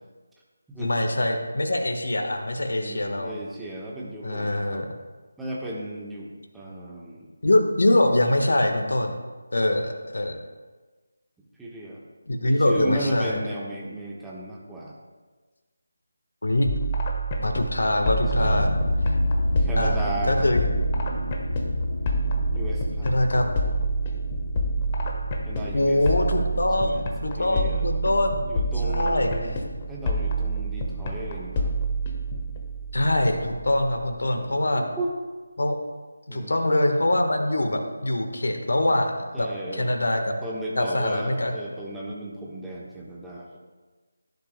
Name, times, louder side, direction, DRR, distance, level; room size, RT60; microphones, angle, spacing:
voice 1, 0.8-3.3 4.2-4.9 7.4-9.1 9.5-10.4 12.3-13.4 16.4-16.7 17.4-18.8 19.8-20.0 20.3-20.6 23.0-23.5 25.7-28.4 28.8-29.6 32.9-34.9 35.6-35.8 36.3-40.3 40.8-41.5, left 1 dB, 60° left, 4 dB, 1.3 m, -23 dB
voice 2, 2.7-4.8 5.4-7.3 9.6-9.7 11.6-12.0 12.4-14.9 17.8-18.7 19.6-20.5 22.5-23.1 25.5-26.0 26.8-27.1 27.4-27.9 28.4-29.6 29.9-31.7 34.3-35.1 36.3-36.7 39.3-39.9 40.4-43.6, right 1 dB, 5° right, -5 dB, 1.2 m, -35 dB
sound 1, 16.7-34.3, right 2 dB, 25° left, 1.2 m, -28 dB
sound 2, 18.2-30.5 31.1-31.5 32.1-32.2 32.5-32.6, left 1 dB, 80° left, 2.6 m, -30 dB
18.0 x 11.0 x 2.2 m, 1.3 s
figure-of-eight pair, 155°, 0 cm